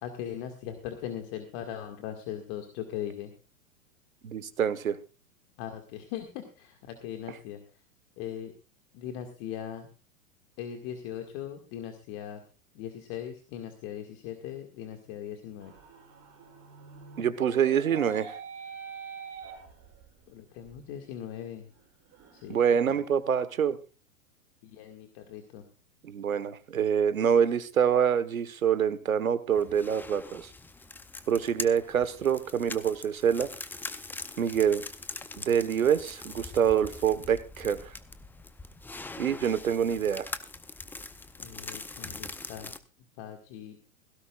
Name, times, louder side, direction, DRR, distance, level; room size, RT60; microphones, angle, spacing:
voice 1, 0.0-3.3 5.6-7.6 8.2-8.5 8.9-9.9 10.6-12.4 12.7-15.7 20.3-21.7 22.3-22.6 22.9-23.0 24.6-25.6 41.4-42.7 43.2-43.8, left 10 dB, 45° left, 5 dB, 2.0 m, -39 dB
voice 2, 4.2-5.0 17.2-18.3 22.5-23.8 26.0-30.5 31.3-33.5 34.4-34.8 35.4-37.9 39.2-40.3, right 8 dB, 85° right, 14 dB, 1.4 m, -26 dB
sound 1, 15.6-20.2 20.6-20.7 21.2-21.3 21.7-22.9, right 5 dB, 35° right, 5.9 m, -45 dB
sound 2, 29.5-42.8, left 3 dB, 5° left, 0.5 m, -42 dB
16.5 x 16.5 x 2.4 m, 0.33 s
hypercardioid pair, 110°, 40 cm